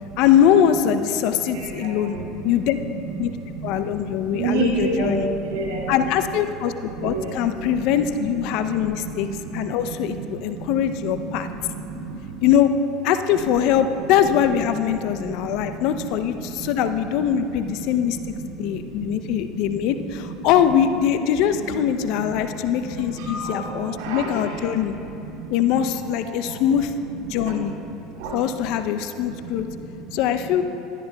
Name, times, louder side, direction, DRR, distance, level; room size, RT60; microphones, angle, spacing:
voice 1, 0.2-2.2 2.4-2.8 3.2-3.3 3.6-5.3 5.9-9.3 9.5-11.5 12.4-12.7 13.0-18.2 18.6-24.9 25.5-26.9 27.3-27.7 28.3-29.7 30.1-30.6, left 9 dB, 60° left, 9 dB, 0.5 m, -22 dB
voice 2, 1.4-2.5 3.2-3.9 4.2-5.9 6.9-7.3 8.5-12.5 15.1-15.8 16.3-16.7 17.9-18.0 18.3-19.8 22.7-25.5 26.2-26.6 27.4-27.7 28.2-28.4 29.4-30.2, right 4 dB, 70° right, -3 dB, 2.5 m, -31 dB
16.5 x 11.0 x 2.3 m, 2.9 s
hypercardioid pair, 80°, 0 cm